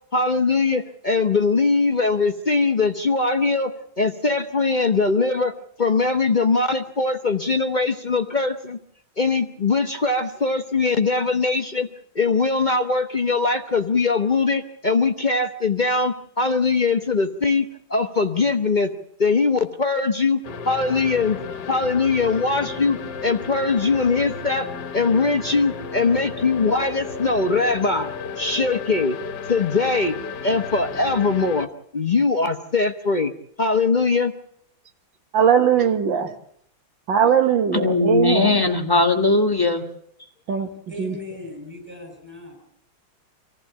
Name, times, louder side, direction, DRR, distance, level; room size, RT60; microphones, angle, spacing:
voice 1, 0.1-3.7 4.0-5.5 5.8-8.8 9.2-11.9 12.1-18.9 19.2-21.4 21.7-24.7 24.9-29.2 29.5-30.2 30.4-31.7 31.9-33.3 33.6-34.3, left 4 dB, 35° left, 0.8 m, -21 dB
sound 1, 20.4-31.7, left 5 dB, 60° left, 1.7 m, -33 dB
voice 2, 35.3-36.3 37.1-38.7 40.5-40.7 41.0-41.2, right 8 dB, 70° right, 2.2 m, -19 dB
voice 3, 37.7-39.9, left 3 dB, 10° left, 1.4 m, -19 dB
voice 4, 40.6-42.6, left 2 dB, 5° right, 5.1 m, -38 dB
25.5 x 15.0 x 8.5 m
omnidirectional pair, 2.2 m